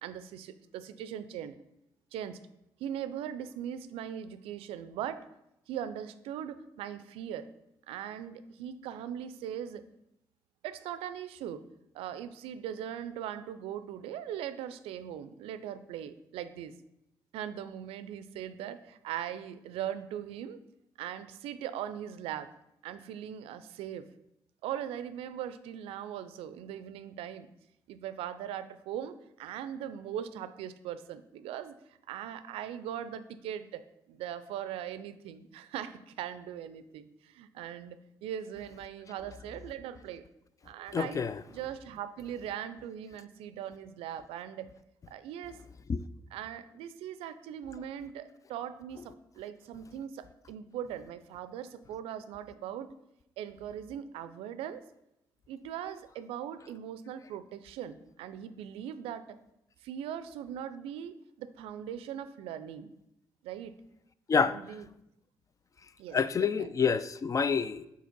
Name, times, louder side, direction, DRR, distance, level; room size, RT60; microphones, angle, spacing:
voice 1, 0.0-1.6 2.1-2.4 2.8-5.2 5.7-7.5 7.9-9.8 10.6-11.6 11.9-16.7 17.3-20.6 21.0-22.5 22.8-24.1 24.6-27.5 27.9-31.8 32.1-33.8 34.1-40.2 40.6-41.2 41.5-44.7 45.1-45.6 46.3-52.9 53.4-54.8 55.5-59.2 59.8-62.9 63.4-63.7 64.3-64.9 66.0-66.7, right 10 dB, 85° right, 0.4 m, -40 dB
voice 2, 40.9-41.4 45.9-46.0 64.3-64.6 66.1-67.9, left 6 dB, 35° left, 0.4 m, -27 dB
5.0 x 4.0 x 5.2 m
supercardioid pair, 60°, 9 cm